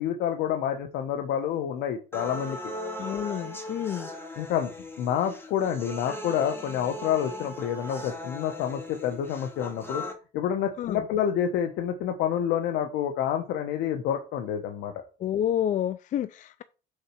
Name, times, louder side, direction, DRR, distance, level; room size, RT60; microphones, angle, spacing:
voice 1, 0.0-2.6 4.4-4.7 5.0-10.0 10.3-14.9, left 9 dB, 85° left, 1.0 m, -28 dB
sound 1, 2.1-10.1, left 1 dB, 15° left, 2.6 m, -39 dB
voice 2, 3.0-4.1 10.8-11.0 15.2-16.6, left 10 dB, 50° left, 0.5 m, -29 dB
6.5 x 4.2 x 6.2 m
cardioid pair, 110°, 17 cm